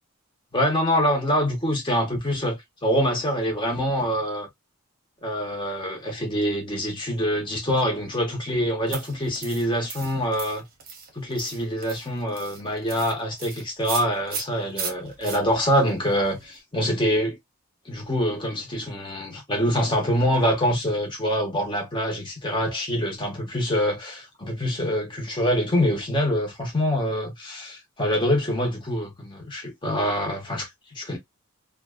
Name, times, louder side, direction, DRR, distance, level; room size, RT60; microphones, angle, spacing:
voice 1, 0.5-4.5 5.2-10.6 11.1-17.4 17.9-31.2, equal, 20° left, 0.9 m, -25 dB
sound 1, 8.9-16.6, right 5 dB, 40° right, 0.8 m, -38 dB
2.5 x 2.2 x 2.3 m
head